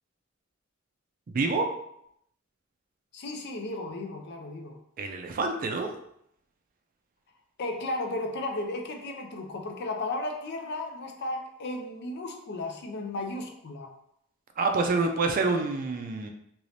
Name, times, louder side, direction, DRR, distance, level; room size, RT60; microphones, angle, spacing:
voice 1, 1.3-1.7 5.0-5.9 14.6-16.3, right 3 dB, 45° right, 4 dB, 0.4 m, -27 dB
voice 2, 3.1-4.8 7.6-13.9, left 2 dB, 55° left, 3 dB, 0.5 m, -34 dB
3.0 x 2.6 x 3.2 m, 0.75 s
head